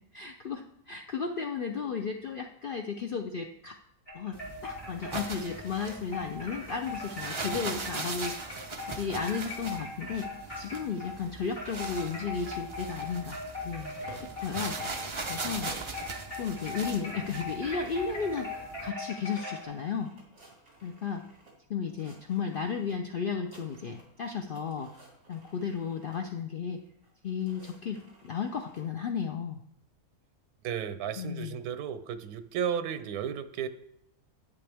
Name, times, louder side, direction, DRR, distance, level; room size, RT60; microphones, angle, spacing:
voice 1, 0.1-3.8 4.1-8.4 8.9-14.8 15.3-15.7 16.4-18.5 18.8-20.1 20.8-21.3 21.7-24.9 25.3-26.8 27.2-29.6 31.2-31.6, left 6 dB, 75° left, 4 dB, 0.5 m, -34 dB
sound 1, 4.1-11.2 11.5-19.6, left 3 dB, 40° left, 3.5 m, -40 dB
sound 2, 4.3-18.9, right 3 dB, 35° right, 0.5 m, -40 dB
sound 3, 12.7-14.3 14.6-16.0 16.5-16.9 17.2-17.3 17.6-21.5 21.9-22.9 23.2-24.2 24.4-26.2 27.0-28.8, right 1 dB, 55° right, 3.3 m, -54 dB
voice 2, 30.6-33.7, right 8 dB, 85° right, 11 dB, 1.2 m, -33 dB
10.5 x 8.4 x 3.5 m, 0.74 s
omnidirectional pair, 1.6 m